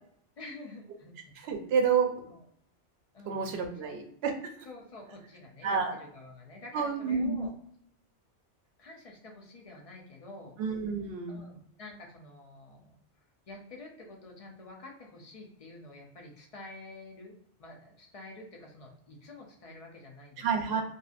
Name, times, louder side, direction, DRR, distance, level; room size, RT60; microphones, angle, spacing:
voice 1, 0.4-1.1 2.3-2.4 3.1-3.9 4.7-7.5 8.8-10.6 11.3-13.0 13.5-20.8, left 2 dB, 50° left, 0 dB, 0.4 m, -48 dB
voice 2, 1.4-2.2 3.3-4.3 5.6-6.0 6.7-7.5 10.6-11.4 20.4-20.8, right 5 dB, 65° right, 4 dB, 0.8 m, -29 dB
2.6 x 2.4 x 2.4 m, 0.68 s
omnidirectional pair, 1.2 m